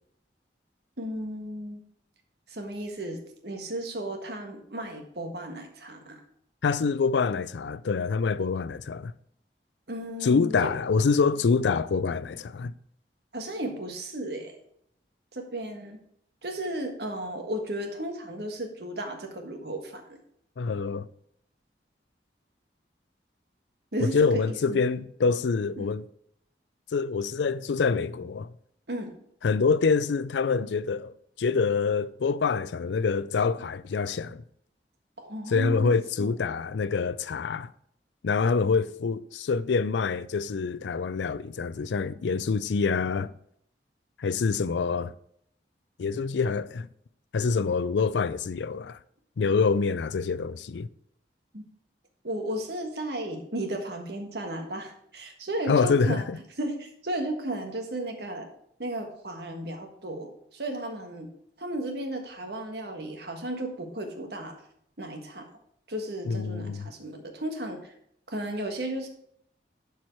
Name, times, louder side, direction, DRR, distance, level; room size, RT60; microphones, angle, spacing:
voice 1, 1.0-1.8 2.5-6.2 9.9-10.7 13.3-14.5 15.3-16.0 16.4-20.2 23.9-24.8 25.8-25.9 28.9-29.1 35.2-35.9 36.2-36.3 51.5-51.6 52.2-56.2 56.6-58.5 58.8-61.3 61.6-64.5 65.0-65.5 65.9-67.9 68.3-69.1, right 1 dB, 70° right, 1.5 m, -34 dB
voice 2, 6.6-9.1 10.2-12.7 20.6-21.1 24.0-26.0 26.9-28.5 29.4-34.4 35.5-37.7 38.2-43.3 44.2-45.1 46.0-46.9 47.3-49.0 49.4-50.9 55.7-56.4 66.3-66.9, left 5 dB, 90° left, 0.4 m, -26 dB
11.5 x 4.7 x 4.5 m
head